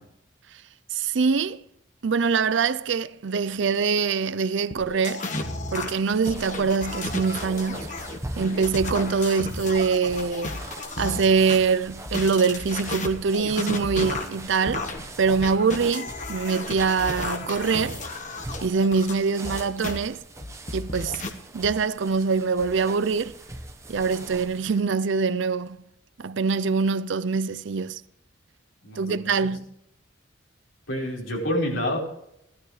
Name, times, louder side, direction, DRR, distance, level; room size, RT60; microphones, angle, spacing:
voice 1, 0.9-1.6 2.0-5.3 5.7-7.9 8.4-10.6 11.0-14.9 15.2-18.0 18.6-20.2 20.7-21.2 21.5-23.3 23.9-25.8 26.2-28.0 29.0-29.6, right 5 dB, 70° right, 0.5 m, -24 dB
sound 1, 4.7-11.6 12.1-20.0 20.4-21.3, left 2 dB, 40° left, 1.4 m, -33 dB
sound 2, 5.8-24.8, right 2 dB, 15° right, 1.0 m, -41 dB
voice 2, 28.8-29.4 30.9-32.0, equal, 90° left, 4.6 m, -28 dB
16.5 x 12.5 x 3.2 m
head